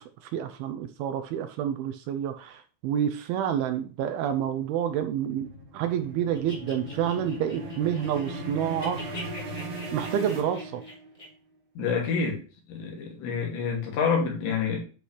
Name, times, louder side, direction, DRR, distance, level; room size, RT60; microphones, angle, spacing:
voice 1, 0.0-9.2 9.9-10.8, right 9 dB, 80° right, 2.3 m, -29 dB
sound 1, 4.5-11.2, right 1 dB, 50° right, 3.4 m, -38 dB
sound 2, 6.3-8.4 8.7-11.3, left 1 dB, 15° left, 3.1 m, -43 dB
voice 2, 11.8-12.4 12.7-14.8, left 5 dB, 90° left, 4.7 m, -27 dB
11.0 x 5.9 x 3.3 m
omnidirectional pair, 4.9 m